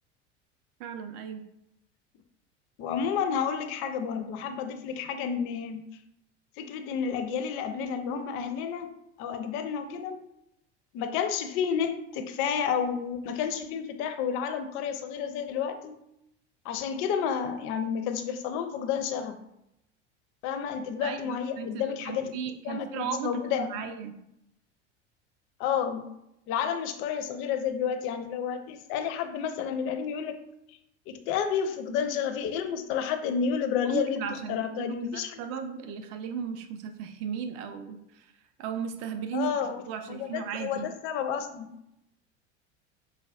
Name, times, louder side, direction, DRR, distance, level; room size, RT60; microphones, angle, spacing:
voice 1, 0.8-1.4 21.0-23.3 23.6-24.1 33.8-38.3 38.6-40.9, right 7 dB, 40° right, 8 dB, 0.4 m, -36 dB
voice 2, 2.8-5.9 6.6-8.9 9.2-10.2 10.9-15.9 16.6-19.4 20.4-22.3 22.6-23.9 25.6-26.1 26.5-30.4 31.1-34.2 34.5-35.4 39.3-41.7, left 7 dB, 35° left, 8 dB, 0.4 m, -30 dB
4.5 x 2.1 x 2.4 m, 0.81 s
figure-of-eight pair, 75°, 35 cm